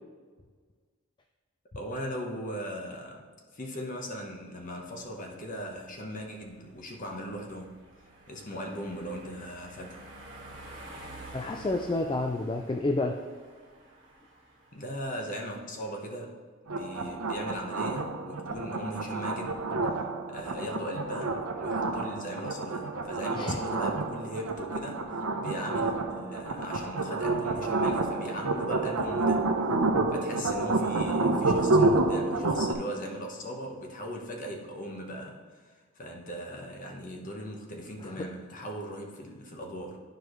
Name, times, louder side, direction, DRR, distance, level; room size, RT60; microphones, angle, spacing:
voice 1, 1.7-3.3 3.5-7.8 8.3-10.0 14.7-16.4 16.7-19.7 20.3-29.5 30.1-40.0, equal, 40° left, 1 dB, 1.1 m, -39 dB
sound 1, 4.3-16.0, right 1 dB, 20° right, 1.8 m, -50 dB
voice 2, 11.3-13.2 23.4-23.6 38.1-38.3, left 2 dB, 20° left, 4 dB, 0.3 m, -29 dB
sound 2, 16.7-32.7, right 2 dB, 90° right, 0.7 m, -29 dB
11.5 x 4.7 x 3.1 m, 1.6 s
head